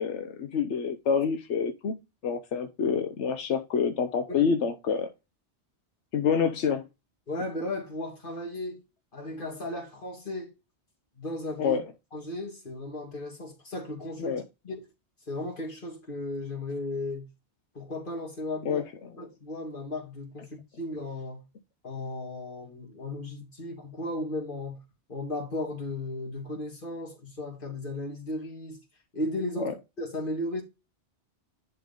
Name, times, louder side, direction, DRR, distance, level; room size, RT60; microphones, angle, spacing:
voice 1, 0.0-1.9 2.2-5.1 6.1-6.8 11.6-11.8 14.2-14.4 18.6-18.8 29.6-29.7, left 6 dB, 90° left, 1.2 m, -27 dB
voice 2, 7.3-8.8 9.1-10.5 11.2-11.8 12.1-14.8 15.3-17.3 17.7-18.8 19.2-21.4 21.8-24.8 25.1-28.8 29.1-30.6, left 1 dB, 50° left, 2.9 m, -35 dB
11.0 x 3.8 x 3.7 m
omnidirectional pair, 1.1 m